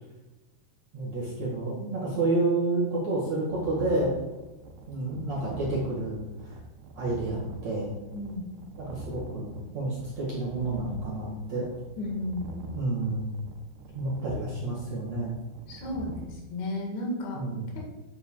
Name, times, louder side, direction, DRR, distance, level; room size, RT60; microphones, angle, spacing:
voice 1, 0.9-4.2 4.9-6.2 6.4-6.6 7.0-7.9 8.7-11.7 12.7-13.3 13.9-15.3 17.3-17.8, right 2 dB, 50° right, -6 dB, 2.2 m, -29 dB
sound 1, 3.5-16.3, right 2 dB, 80° right, 2.7 m, -44 dB
voice 2, 8.1-8.5 12.0-12.6 15.7-17.4 17.8-17.9, left 1 dB, 80° left, -1 dB, 3.9 m, -33 dB
9.4 x 8.8 x 2.3 m, 1.1 s
omnidirectional pair, 5.1 m